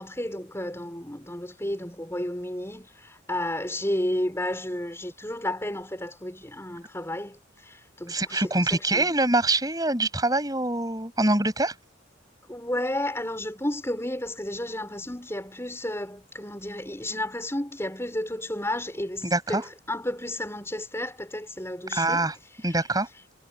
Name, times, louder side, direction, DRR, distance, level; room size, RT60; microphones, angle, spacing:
voice 1, 0.0-9.1 12.5-22.3 22.6-22.8, left 1 dB, 15° left, 5.4 m, -32 dB
voice 2, 8.1-11.7 19.2-19.6 21.9-22.3 22.6-23.1, right 2 dB, 20° right, 7.8 m, -24 dB
head